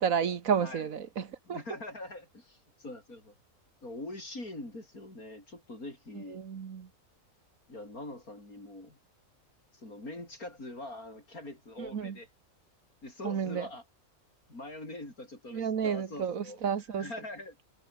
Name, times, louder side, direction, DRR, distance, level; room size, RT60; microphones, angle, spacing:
voice 1, 0.0-1.6 6.2-6.9 11.8-12.2 13.2-13.7 15.5-17.1, right 7 dB, 70° right, 1.8 m, -31 dB
voice 2, 0.6-0.9 1.5-3.3 3.8-6.4 7.7-9.0 9.7-12.3 13.0-13.8 14.5-16.6 16.9-17.6, left 2 dB, 90° left, 8.3 m, -43 dB
omnidirectional pair, 1.5 m